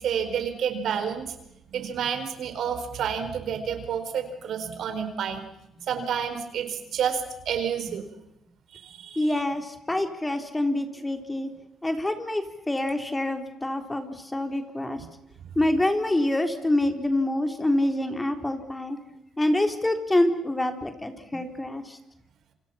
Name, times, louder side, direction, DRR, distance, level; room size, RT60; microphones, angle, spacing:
voice 1, 0.0-1.3 1.7-5.4 5.9-8.0 8.7-9.3, right 7 dB, 70° right, 8 dB, 4.6 m, -29 dB
voice 2, 9.2-11.5 11.8-15.0 15.6-19.0 19.4-22.0, left 1 dB, 15° left, 7 dB, 3.8 m, -26 dB
28.5 x 27.0 x 5.8 m, 0.81 s
cardioid pair, 90°, 0 cm